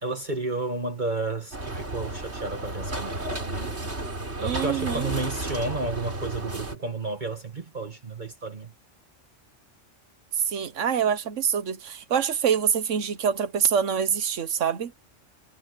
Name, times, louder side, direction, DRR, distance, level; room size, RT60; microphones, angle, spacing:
voice 1, 0.0-3.8 4.4-8.7, right 3 dB, 40° right, 1.7 m, -32 dB
sound 1, 1.5-6.7, right 2 dB, 60° right, 4.3 m, -33 dB
voice 2, 4.4-5.1 10.3-14.9, right 7 dB, 80° right, 1.5 m, -25 dB
omnidirectional pair, 1.3 m